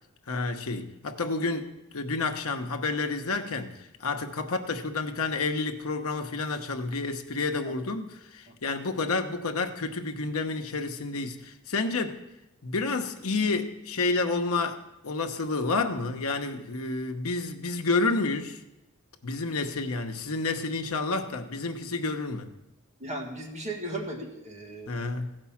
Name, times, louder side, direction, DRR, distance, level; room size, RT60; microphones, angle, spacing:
voice 1, 0.3-12.3 12.6-18.6 19.2-22.5 24.9-25.4, left 3 dB, 70° left, 1.0 m, -30 dB
voice 2, 23.0-24.9, right 1 dB, 30° right, 1.7 m, -36 dB
15.0 x 5.3 x 7.1 m
head